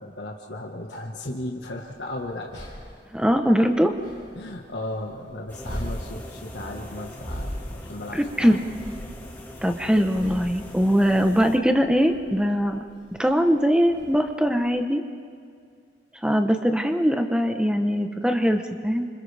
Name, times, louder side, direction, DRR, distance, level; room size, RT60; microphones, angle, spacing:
voice 1, 0.0-2.7 4.3-8.6, left 1 dB, 75° left, 0 dB, 1.6 m, -35 dB
sound 1, 1.6-14.7, equal, 30° right, 3.6 m, -41 dB
voice 2, 3.1-3.9 8.1-8.6 9.6-12.8 13.2-15.0 16.2-19.1, equal, 5° right, 6 dB, 1.0 m, -21 dB
sound 2, 5.5-11.6, left 1 dB, 10° left, 2.0 m, -41 dB
30.0 x 26.5 x 3.5 m, 2.2 s
head